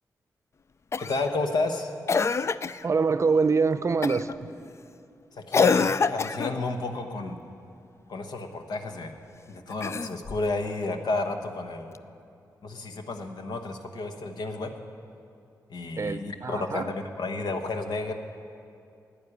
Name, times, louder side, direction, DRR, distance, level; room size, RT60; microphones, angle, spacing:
Cough, 0.9-1.3 2.1-2.8 4.0-4.3 5.5-6.6 9.7-10.5 11.9-12.0, left 5 dB, 40° left, 0.3 m, -25 dB
voice 1, 1.0-1.9 5.4-7.4 8.1-9.2 9.5-12.0 12.6-14.7 15.7-18.1, left 3 dB, 75° left, 6 dB, 1.1 m, -31 dB
voice 2, 2.8-4.3 16.0-16.9, right 4 dB, 45° right, 12 dB, 0.6 m, -24 dB
11.5 x 8.7 x 9.9 m, 2.5 s
cardioid pair, 75°, 7 cm